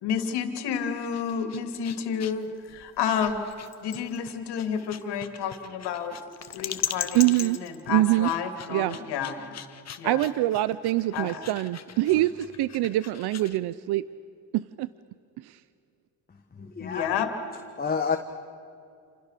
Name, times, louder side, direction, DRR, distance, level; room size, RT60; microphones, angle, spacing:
voice 1, 0.0-3.4 3.8-6.2 6.5-9.5 10.0-10.2 11.1-11.4 16.8-17.3, left 7 dB, 80° left, 6 dB, 3.0 m, -30 dB
sound 1, 0.9-13.6, left 8 dB, 40° left, 1.3 m, -40 dB
voice 2, 7.1-7.6 7.9-8.3 8.7-9.0 10.0-14.0 14.5-14.9 15.4-15.6, right 16 dB, 75° right, 16 dB, 0.7 m, -24 dB
voice 3, 16.6-17.1 17.5-18.2, left 5 dB, 25° left, 4 dB, 1.6 m, -30 dB
28.5 x 28.0 x 6.8 m, 2.4 s
cardioid pair, 115°, 39 cm